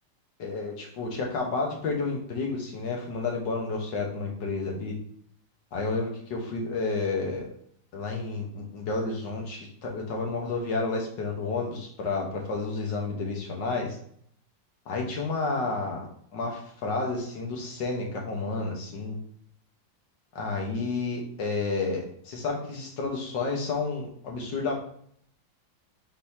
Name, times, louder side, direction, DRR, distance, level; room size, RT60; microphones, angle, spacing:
voice 1, 0.4-5.0 5.7-7.5 7.9-14.0 14.9-19.2 20.4-24.7, left 3 dB, 75° left, 0 dB, 2.0 m, -31 dB
8.0 x 4.2 x 2.9 m, 0.64 s
omnidirectional pair, 2.0 m